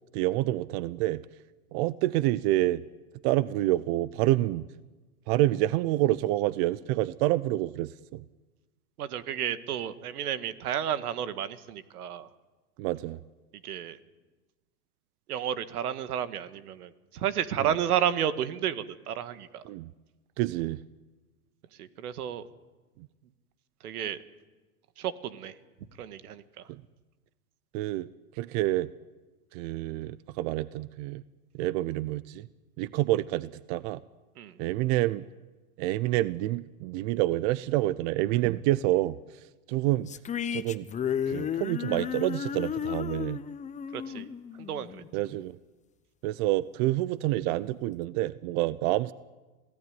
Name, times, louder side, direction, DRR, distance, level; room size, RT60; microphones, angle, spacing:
voice 1, 0.1-1.2 1.7-2.8 3.2-4.6 5.3-8.2 12.8-13.2 17.6-17.7 19.6-19.9 20.4-20.8 26.7-26.8 27.7-28.1 28.3-28.9 29.5-31.2 31.5-32.5 32.8-34.0 34.6-35.2 35.8-39.2 39.7-40.1 40.5-40.9 41.3-43.4 45.1-45.6 46.2-49.1, right 16 dB, 45° right, 18 dB, 0.7 m, -28 dB
voice 2, 9.0-12.3 13.6-14.0 15.3-19.6 21.8-22.5 23.8-24.2 25.0-25.6 26.0-26.6 34.4-34.6 38.4-38.6 43.9-44.3 44.6-45.0, right 9 dB, 75° right, 12 dB, 1.9 m, -32 dB
sound 1, 40.1-45.4, left 8 dB, 15° left, 0.9 m, -33 dB
27.0 x 17.5 x 9.6 m, 1.2 s
hypercardioid pair, 120°, 45 cm